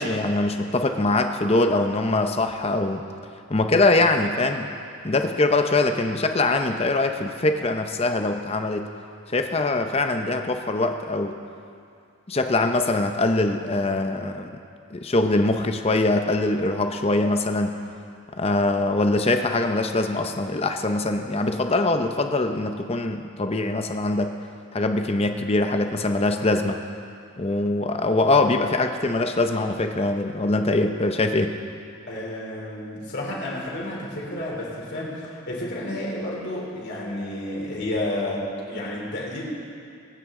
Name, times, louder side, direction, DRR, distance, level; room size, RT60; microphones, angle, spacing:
voice 1, 0.0-3.0 3.5-4.7 5.0-8.9 9.3-11.4 12.3-14.5 14.9-17.7 18.4-24.3 24.7-26.8 27.4-31.6, left 2 dB, 30° left, 6 dB, 0.7 m, -23 dB
voice 2, 32.1-39.4, left 1 dB, 50° left, -4 dB, 3.3 m, -31 dB
23.5 x 9.3 x 3.8 m, 2.4 s
head